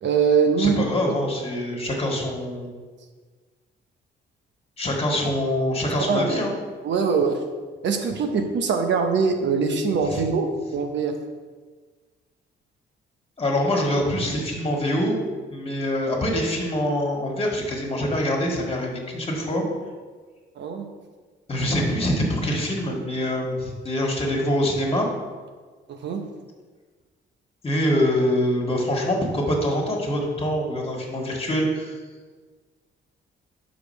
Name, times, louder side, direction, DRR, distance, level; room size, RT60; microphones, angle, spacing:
voice 1, 0.0-0.8 6.1-6.3 6.8-7.4 7.8-11.2 20.6-20.9 25.9-26.2, right 5 dB, 65° right, 5 dB, 0.8 m, -22 dB
voice 2, 0.6-2.7 4.8-6.5 10.1-10.2 13.4-15.2 15.5-19.6 21.5-25.1 27.6-32.0, left 1 dB, 30° left, 0 dB, 1.7 m, -24 dB
5.2 x 4.9 x 6.4 m, 1.4 s
cardioid pair, 90°, 20 cm